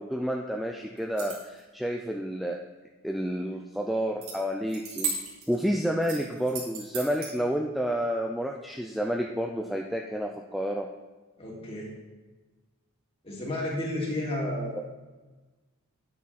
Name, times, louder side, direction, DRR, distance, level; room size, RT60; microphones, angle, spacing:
voice 1, 0.0-2.6 3.0-5.1 5.5-10.9, equal, ahead, 1 dB, 0.4 m, -30 dB
sound 1, 1.0-1.6 4.2-4.3 4.7-5.6 6.0-7.3, right 5 dB, 80° right, 3.0 m, -35 dB
voice 2, 11.4-11.9 13.2-14.8, left 1 dB, 25° left, -3 dB, 2.4 m, -32 dB
9.9 x 8.4 x 4.2 m, 1.2 s
head